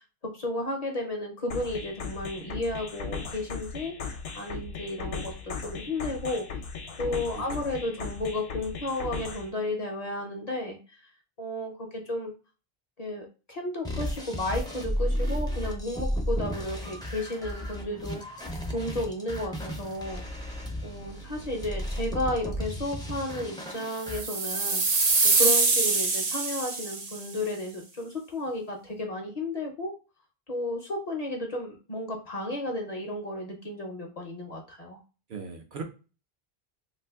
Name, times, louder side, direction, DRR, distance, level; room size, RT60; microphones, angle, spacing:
voice 1, 0.0-6.5 7.0-11.1 11.4-12.3 13.0-18.2 18.7-20.3 20.8-29.9 30.5-35.0, left 1 dB, 45° left, 2 dB, 0.6 m, -33 dB
sound 1, 1.5-9.5, left 5 dB, 75° left, 0.9 m, -37 dB
voice 2, 7.3-7.7 35.3-35.8, right 5 dB, 60° right, 3 dB, 0.7 m, -39 dB
sound 2, 13.8-24.2, equal, 5° left, 0.4 m, -33 dB
sound 3, 24.0-27.2, right 3 dB, 85° right, 1.0 m, -24 dB
2.5 x 2.4 x 3.4 m, 0.33 s
omnidirectional pair, 1.1 m